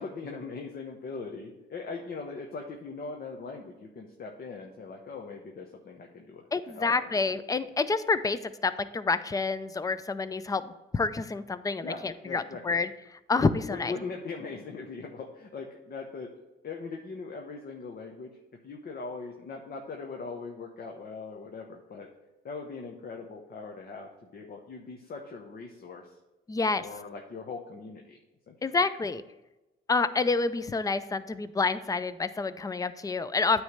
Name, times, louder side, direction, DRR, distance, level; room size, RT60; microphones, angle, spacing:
voice 1, 0.0-6.5 6.7-6.9 7.5-7.6 11.8-12.8 13.7-16.3 16.6-18.4 18.6-22.1 22.4-26.1 26.8-28.2 28.5-28.6, left 4 dB, 50° left, 1 dB, 0.9 m, -40 dB
voice 2, 6.5-10.6 10.9-12.9 13.3-13.9 26.5-26.9 28.6-29.2 29.9-33.6, left 4 dB, 20° left, 13 dB, 0.4 m, -28 dB
9.2 x 3.2 x 6.5 m, 1.0 s
cardioid pair, 90°, 20 cm